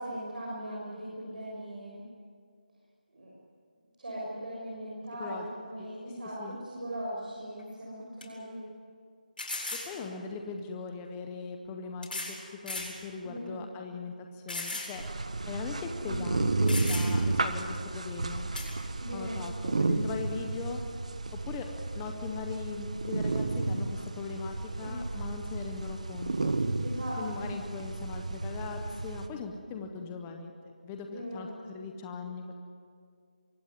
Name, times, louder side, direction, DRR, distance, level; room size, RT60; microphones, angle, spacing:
voice 1, 0.0-2.0 3.1-3.3 4.0-8.6 13.2-13.6 16.0-16.2 19.0-19.5 24.8-25.0 26.8-27.5 31.0-31.5, equal, 65° right, -6 dB, 6.7 m, -39 dB
sound 1, 7.6-7.7 8.2-8.3 9.4-9.9 11.0-11.1 12.0-12.4 12.7-12.9 13.5-13.6 14.5-14.9 15.3-15.4 16.3-16.4 16.7-17.3 18.5-18.7, left 2 dB, 70° left, 7.7 m, -36 dB
voice 2, 9.7-12.4 12.6-15.0 15.5-18.5 19.1-20.8 21.3-21.6 21.9-26.6 27.2-30.5 30.8-32.6, left 5 dB, 5° left, 4 dB, 0.6 m, -40 dB
sound 2, 15.0-29.3, right 2 dB, 50° right, 1.4 m, -32 dB
23.5 x 16.5 x 9.7 m, 2.2 s
figure-of-eight pair, 180°, 5 cm